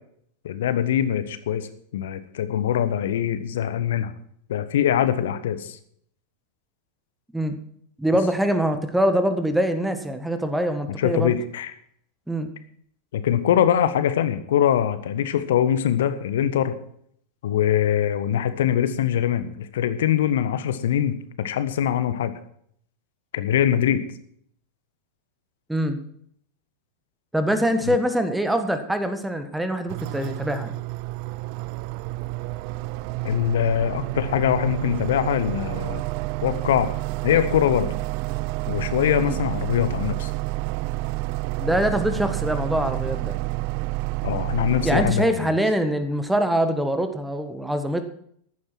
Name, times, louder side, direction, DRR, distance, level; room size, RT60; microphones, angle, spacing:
voice 1, 0.4-1.7 1.9-4.1 4.5-5.8 11.0-11.7 13.1-16.7 17.4-22.3 23.3-24.0 27.9-28.0 33.2-36.0 36.4-36.9 37.2-37.9 38.7-40.3 44.2-45.5, left 10 dB, 60° left, 12 dB, 1.4 m, -23 dB
voice 2, 8.0-11.3 12.3-12.5 25.7-26.0 27.3-30.8 39.2-39.4 41.6-43.4 44.8-48.0, equal, 5° right, 8 dB, 1.6 m, -24 dB
sound 1, 29.9-45.1, right 20 dB, 45° right, 0.5 m, -29 dB
15.0 x 11.5 x 4.6 m, 0.65 s
figure-of-eight pair, 90°, 0 cm